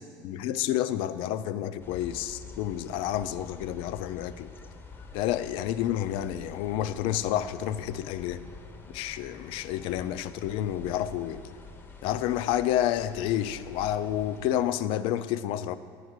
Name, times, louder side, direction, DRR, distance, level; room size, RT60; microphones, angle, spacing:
voice 1, 0.2-4.5 5.1-8.4 8.9-11.4 12.0-15.8, left 11 dB, 75° left, 13 dB, 0.4 m, -29 dB
sound 1, 1.8-14.4, left 3 dB, 20° left, 0.6 m, -47 dB
10.5 x 4.7 x 8.0 m, 2.2 s
cardioid pair, 145°, 9 cm